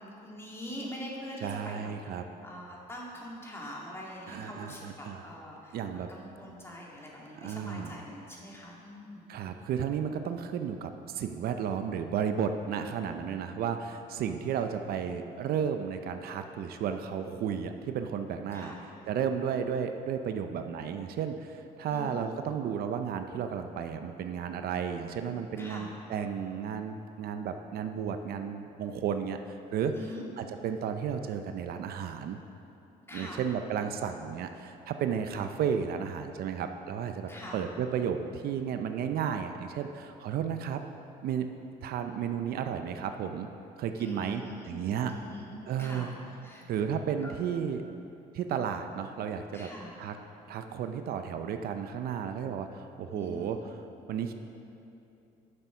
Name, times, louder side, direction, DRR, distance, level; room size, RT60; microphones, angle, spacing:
voice 1, 0.0-1.9 2.4-9.3 18.5-18.8 21.9-22.2 25.6-25.9 29.9-30.3 33.1-33.4 37.3-37.6 44.0-44.8 45.1-46.1 46.4-46.6 47.2-47.3 49.5-49.9 53.1-53.5, left 1 dB, 15° left, -3 dB, 2.1 m, -43 dB
voice 2, 1.4-2.3 4.3-5.3 5.7-6.1 7.3-8.0 9.3-18.7 19.1-30.1 30.4-32.4 33.1-40.8 41.2-41.5 41.8-43.5 43.8-45.1 45.7-46.1 46.7-47.8 48.3-49.7 50.0-50.2 50.5-53.8 54.1-54.3, right 7 dB, 65° right, 7 dB, 0.6 m, -33 dB
9.9 x 6.9 x 5.9 m, 2.9 s
cardioid pair, 110°, 17 cm